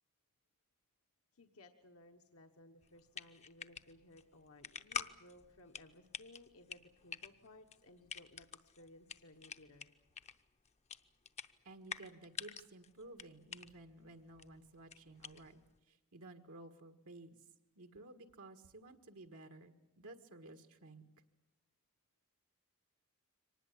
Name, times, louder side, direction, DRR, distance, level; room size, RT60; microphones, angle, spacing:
voice 1, 1.3-9.9, left 2 dB, 75° left, 4 dB, 1.3 m, -60 dB
sound 1, 2.8-15.8, left 6 dB, 30° left, 0.7 m, -49 dB
voice 2, 11.6-17.4 17.7-21.1, right 2 dB, 80° right, 7 dB, 1.6 m, -55 dB
24.5 x 19.5 x 8.5 m, 0.95 s
head